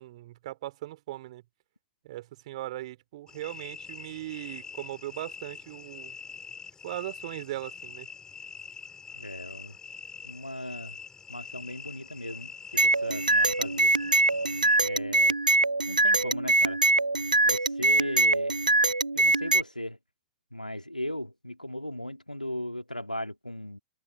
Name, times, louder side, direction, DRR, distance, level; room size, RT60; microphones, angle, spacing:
voice 1, 0.0-1.4 2.0-6.1 6.8-8.1, right 15 dB, 55° right, 3.1 m, -39 dB
sound 1, 3.3-14.8, left 6 dB, 15° left, 3.1 m, -44 dB
voice 2, 9.1-9.8 10.2-11.0 11.3-13.9 14.8-15.3 15.9-16.8 17.4-18.6 19.1-20.0 20.5-23.8, left 1 dB, 90° left, 2.5 m, -37 dB
sound 2, 12.8-19.6, right 2 dB, 85° right, 1.0 m, -23 dB
figure-of-eight pair, 95°, 4 cm